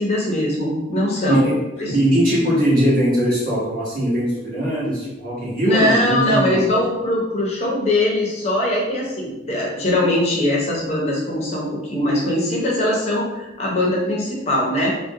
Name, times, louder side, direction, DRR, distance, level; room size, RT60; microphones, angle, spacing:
voice 1, 0.0-1.5 1.8-1.9 5.6-14.9, left 1 dB, 35° left, -3 dB, 0.5 m, -21 dB
voice 2, 1.9-6.7, equal, 50° right, -8 dB, 1.0 m, -20 dB
2.4 x 2.0 x 2.6 m, 1.0 s
head